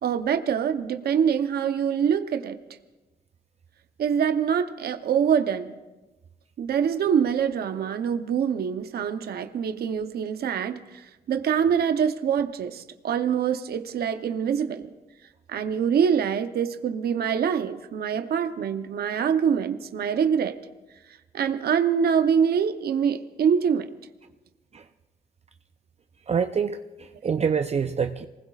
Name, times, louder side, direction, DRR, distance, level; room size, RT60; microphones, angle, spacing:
voice 1, 0.0-2.6 4.0-5.8 6.6-14.9 15.5-20.6 21.3-23.9, right 7 dB, 75° right, 9 dB, 0.8 m, -25 dB
voice 2, 26.3-28.3, right 6 dB, 40° right, 8 dB, 0.6 m, -26 dB
26.5 x 20.0 x 2.4 m, 1.1 s
cardioid pair, 70°, 16 cm